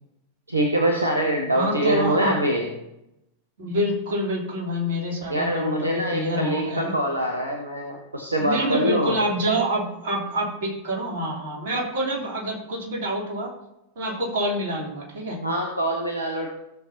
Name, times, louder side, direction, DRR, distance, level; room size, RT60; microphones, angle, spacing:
voice 1, 0.5-2.7 5.3-9.2 15.4-16.5, right 1 dB, 80° right, 0 dB, 1.2 m, -24 dB
voice 2, 1.5-2.4 3.6-6.9 8.4-13.5 14.0-15.4, equal, 55° right, -3 dB, 3.4 m, -27 dB
16.0 x 7.0 x 2.9 m, 0.87 s
figure-of-eight pair, 90°, 0 cm